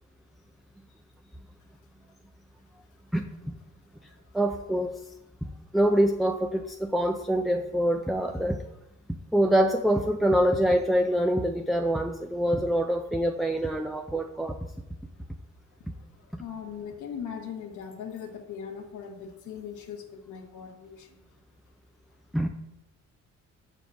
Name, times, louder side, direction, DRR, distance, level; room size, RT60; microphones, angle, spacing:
voice 1, 3.1-3.6 4.3-5.0 5.4-5.5 5.7-8.6 9.3-14.6 22.3-22.5, equal, ahead, 5 dB, 0.4 m, -25 dB
voice 2, 15.8-21.2, left 7 dB, 75° left, 2 dB, 1.1 m, -40 dB
5.4 x 5.0 x 6.2 m, 0.94 s
cardioid pair, 90°, 30 cm